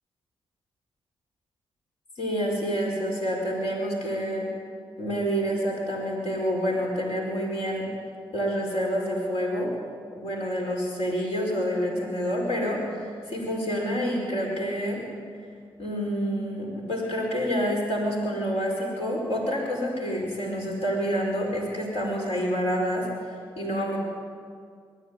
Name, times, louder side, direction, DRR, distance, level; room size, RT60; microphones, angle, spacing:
voice 1, 2.2-4.5 5.0-7.9 8.3-9.7 10.1-15.0 15.8-23.3 23.6-24.0, equal, 80° left, -1 dB, 5.2 m, -28 dB
22.0 x 14.5 x 9.9 m, 2.1 s
supercardioid pair, 45°, 10 cm